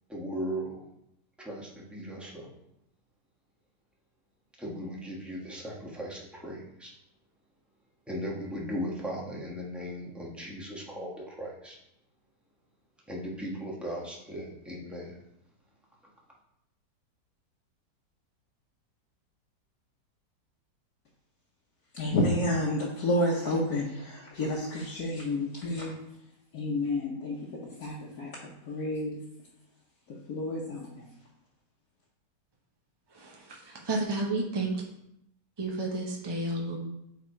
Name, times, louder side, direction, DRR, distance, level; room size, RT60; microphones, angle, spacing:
voice 1, 0.1-0.9 1.4-2.5 4.6-6.9 8.1-11.8 13.1-15.2, equal, ahead, -4 dB, 1.0 m, -37 dB
voice 2, 21.9-26.0 26.5-28.3 28.7-29.2 30.1-31.1, left 1 dB, 60° left, -4 dB, 1.3 m, -30 dB
voice 3, 33.1-34.8 35.6-36.8, right 2 dB, 40° right, -1 dB, 0.3 m, -31 dB
7.5 x 3.6 x 4.4 m, 0.81 s
omnidirectional pair, 1.9 m